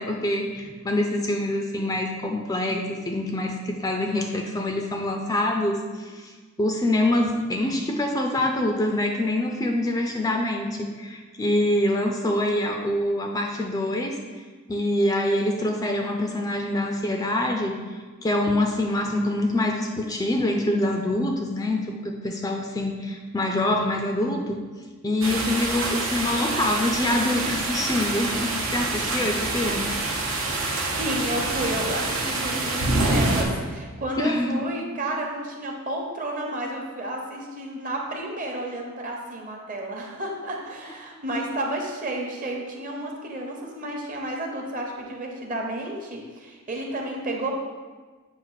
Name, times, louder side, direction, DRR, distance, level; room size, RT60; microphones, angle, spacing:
voice 1, 0.0-6.3 6.6-14.2 14.7-17.8 18.2-24.6 25.0-29.9 30.9-31.0 34.2-34.6, left 1 dB, 15° left, 2 dB, 0.4 m, -25 dB
sound 1, 25.2-33.4, right 2 dB, 80° right, 0.9 m, -26 dB
voice 2, 31.0-47.5, right 1 dB, 40° right, 0 dB, 0.9 m, -31 dB
7.2 x 2.5 x 5.6 m, 1.4 s
head